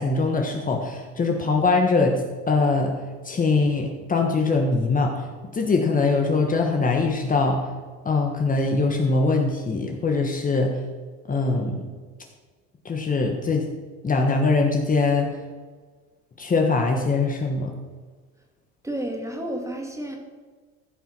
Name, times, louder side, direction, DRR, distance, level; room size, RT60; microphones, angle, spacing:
voice 1, 0.0-2.2 2.5-2.9 3.2-5.1 5.5-7.6 8.0-10.7 11.3-11.8 12.8-13.7 14.0-15.3 16.4-17.7, left 3 dB, 25° left, 2 dB, 1.4 m, -22 dB
voice 2, 18.8-20.2, right 1 dB, 10° right, 2 dB, 2.2 m, -31 dB
15.0 x 5.5 x 6.1 m, 1.4 s
cardioid pair, 110°, 30 cm